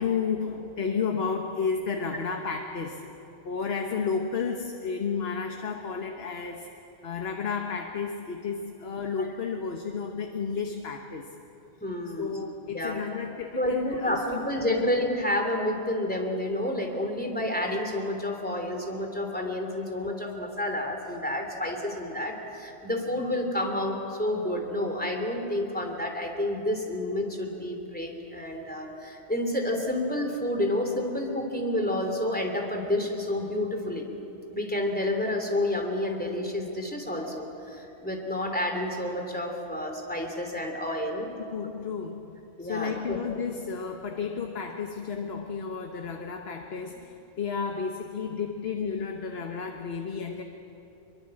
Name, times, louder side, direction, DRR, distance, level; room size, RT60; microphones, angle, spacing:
voice 1, 0.0-3.1 3.4-6.7 7.0-11.4 12.2-14.8 41.5-50.4, left 5 dB, 60° left, 4 dB, 1.4 m, -32 dB
voice 2, 11.8-12.4 12.7-13.0 13.6-34.1 34.5-41.3 42.6-43.2, left 1 dB, 10° left, 2 dB, 3.1 m, -29 dB
24.5 x 22.5 x 7.8 m, 3.0 s
omnidirectional pair, 1.2 m